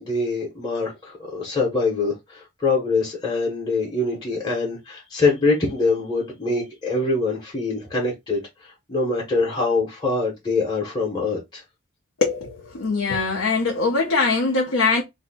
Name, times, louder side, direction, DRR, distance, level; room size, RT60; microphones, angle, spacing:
voice 1, 0.0-11.6, left 3 dB, 20° left, 0.8 m, -24 dB
voice 2, 12.2-15.0, left 4 dB, 80° left, 0.7 m, -22 dB
2.7 x 2.1 x 3.9 m
head